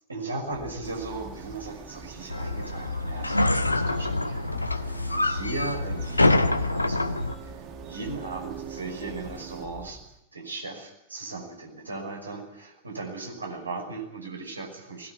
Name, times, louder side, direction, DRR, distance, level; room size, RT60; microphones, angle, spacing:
voice 1, 0.1-10.0 10.3-15.1, right 3 dB, 80° right, 1 dB, 5.9 m, -37 dB
Telephone, 0.5-10.2, equal, 15° right, 3.0 m, -47 dB
sound 1, 0.8-9.7, right 9 dB, 35° right, 2.1 m, -45 dB
sound 2, 2.3-7.3, left 2 dB, 85° left, 1.0 m, -25 dB
20.5 x 18.5 x 9.4 m, 0.81 s
figure-of-eight pair, 90°, 0 cm